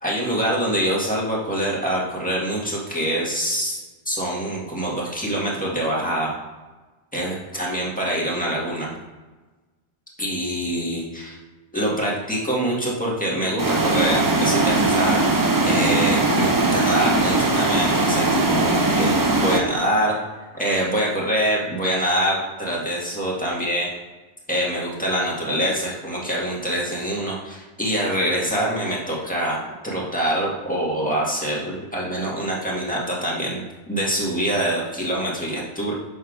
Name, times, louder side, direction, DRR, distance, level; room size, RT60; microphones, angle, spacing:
voice 1, 0.0-3.8 4.1-6.3 7.1-8.9 10.2-11.4 11.7-19.1 19.4-20.1 20.5-23.9 24.5-29.6 29.8-35.9, right 1 dB, 5° left, -5 dB, 1.7 m, -25 dB
sound 1, 13.6-19.6, right 2 dB, 25° right, 0.5 m, -20 dB
7.0 x 4.2 x 5.0 m, 1.2 s
omnidirectional pair, 1.2 m